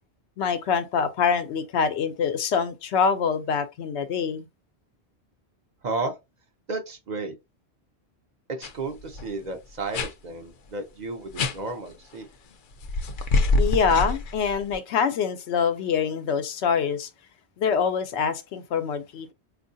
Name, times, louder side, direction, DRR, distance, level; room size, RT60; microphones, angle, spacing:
voice 1, 0.4-4.5 13.6-17.1 17.6-19.3, left 6 dB, 90° left, 0.9 m, -25 dB
voice 2, 5.8-6.2 6.7-7.4 8.6-12.3, right 3 dB, 50° right, 0.6 m, -33 dB
sound 1, 8.6-8.7 9.0-9.3 9.9-10.1 11.4-11.5 12.8-14.7, left 2 dB, 60° left, 0.6 m, -25 dB
4.4 x 2.4 x 2.6 m
omnidirectional pair, 1.1 m